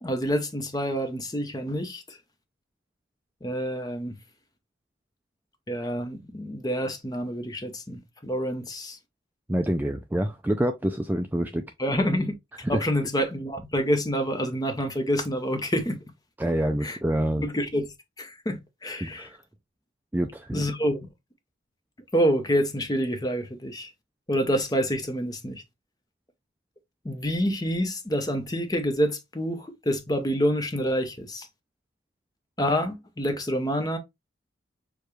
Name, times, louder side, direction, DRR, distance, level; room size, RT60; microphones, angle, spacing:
voice 1, 0.0-2.2 3.4-4.2 5.7-9.0 11.8-12.3 12.7-16.0 16.8-17.0 17.4-17.9 18.2-19.3 20.5-21.1 22.1-23.9 24.3-25.6 27.0-31.5 32.6-34.0, equal, 20° left, 0.7 m, -27 dB
voice 2, 9.5-11.7 12.6-12.8 16.4-17.5 19.0-19.4 20.1-20.7, right 1 dB, 10° right, 0.3 m, -27 dB
6.7 x 2.3 x 3.1 m
head